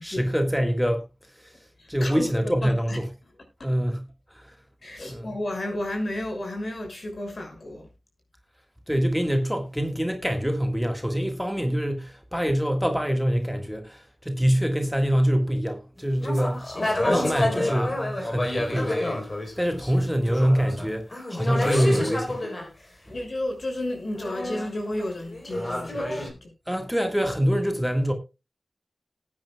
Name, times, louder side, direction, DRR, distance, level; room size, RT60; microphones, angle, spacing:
voice 1, 0.0-3.1 3.6-4.0 4.3-4.6 5.1-5.4 8.9-16.7 17.0-19.3 19.6-22.4 26.7-28.1, equal, ahead, 1.7 m, -25 dB
voice 2, 1.8-3.0 4.8-7.9 23.1-26.5, left 1 dB, 60° left, 6.1 m, -32 dB
sound 1, 16.2-22.7 24.1-26.3, left 1 dB, 40° left, 4.1 m, -28 dB
19.5 x 9.6 x 2.3 m
wide cardioid pair, 75°, 0 cm